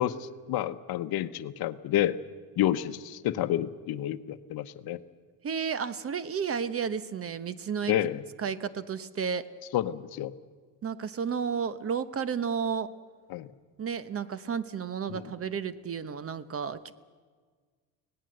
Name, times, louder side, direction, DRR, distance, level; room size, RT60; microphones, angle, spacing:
voice 1, 0.0-2.2 2.6-5.0 7.9-8.2 9.7-10.3 13.3-13.5 15.1-15.2, left 12 dB, 60° left, 12 dB, 1.0 m, -29 dB
voice 2, 5.4-7.9 8.4-9.5 10.8-12.9 13.8-16.9, right 6 dB, 35° right, 14 dB, 1.0 m, -32 dB
25.5 x 18.5 x 7.8 m, 1.5 s
cardioid pair, 110°, 42 cm